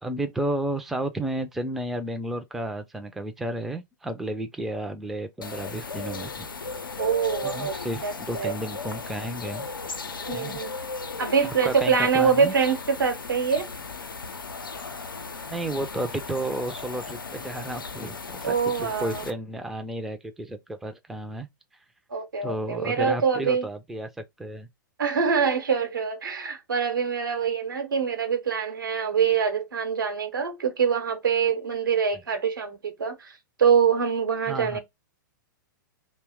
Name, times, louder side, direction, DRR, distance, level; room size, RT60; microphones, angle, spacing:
voice 1, 0.0-6.5 7.4-9.6 10.3-10.6 11.6-12.5 15.5-21.5 22.4-24.1 24.4-24.7 34.5-34.8, right 1 dB, ahead, 0.4 m, -32 dB
sound 1, 5.4-19.3, left 4 dB, 90° left, 0.5 m, -36 dB
voice 2, 7.0-7.7 8.0-8.5 10.3-10.7 11.2-13.7 18.4-19.3 22.1-23.7 25.0-34.8, right 6 dB, 80° right, 0.9 m, -24 dB
2.7 x 2.1 x 3.5 m
figure-of-eight pair, 105°, 11 cm